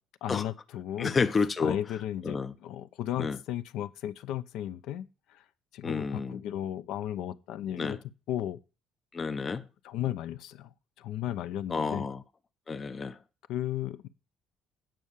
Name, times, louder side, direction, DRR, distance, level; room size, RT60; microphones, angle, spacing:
voice 1, 0.2-1.2 1.6-5.4 5.7-8.0 8.3-8.6 9.8-10.7 11.0-12.1 13.5-14.1, left 12 dB, 70° left, 0.7 m, -35 dB
voice 2, 1.0-1.8 2.2-2.5 3.2-3.4 5.8-6.4 7.8-8.0 9.1-9.6 11.7-12.2 12.7-13.2, left 5 dB, 20° left, 0.5 m, -30 dB
9.0 x 5.6 x 6.5 m
cardioid pair, 160°, 0 cm